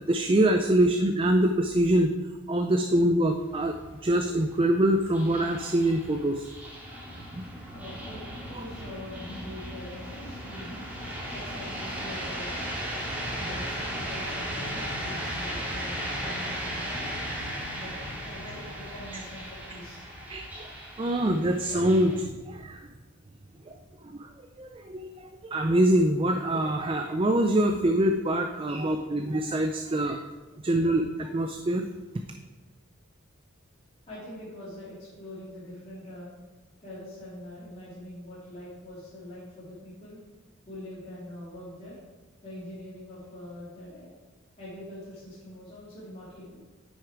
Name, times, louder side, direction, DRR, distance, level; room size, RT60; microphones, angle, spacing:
voice 1, 0.1-2.1 2.5-3.8 4.0-6.4 20.3-20.5 21.0-22.9 23.7-23.8 24.1-24.3 24.6-30.2 30.6-31.8, right 1 dB, 25° right, 6 dB, 0.4 m, -24 dB
sound 1, 3.2-22.2, equal, 10° right, 2.0 m, -36 dB
voice 2, 7.7-10.8 11.3-12.6 13.4-17.0 17.7-17.9 18.2-20.1 34.1-36.3 36.8-40.2 40.7-42.0 42.4-44.1 44.6-46.7, left 1 dB, 30° left, -9 dB, 2.7 m, -43 dB
9.7 x 6.4 x 4.7 m, 1.2 s
head